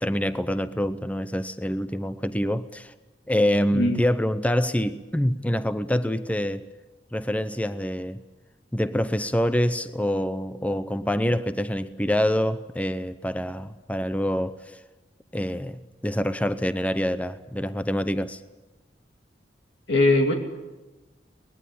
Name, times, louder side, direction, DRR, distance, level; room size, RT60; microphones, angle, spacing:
voice 1, 0.0-2.9 3.3-6.7 7.1-8.2 8.7-14.8 15.3-18.4, equal, 10° left, 0.7 m, -26 dB
voice 2, 19.9-20.3, left 2 dB, 70° left, 2.8 m, -20 dB
23.5 x 20.5 x 8.7 m
head